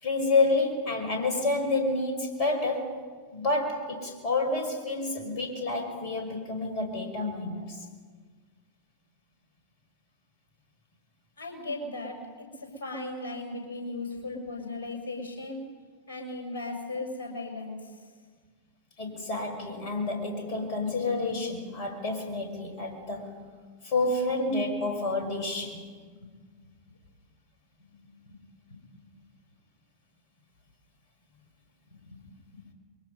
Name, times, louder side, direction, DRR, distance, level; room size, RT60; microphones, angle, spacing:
voice 1, 0.0-3.0 3.3-7.8 19.0-23.4 23.8-25.8, left 2 dB, 40° left, 3 dB, 5.4 m, -29 dB
voice 2, 11.4-15.6 16.1-18.0 26.1-26.2 26.6-26.7 27.9-28.0 28.3-28.4 28.7-28.8 29.1-29.2 31.9-32.2 32.5-32.6, left 2 dB, 60° left, 1 dB, 6.4 m, -37 dB
26.5 x 23.0 x 5.5 m, 1.5 s
figure-of-eight pair, 90°, 0 cm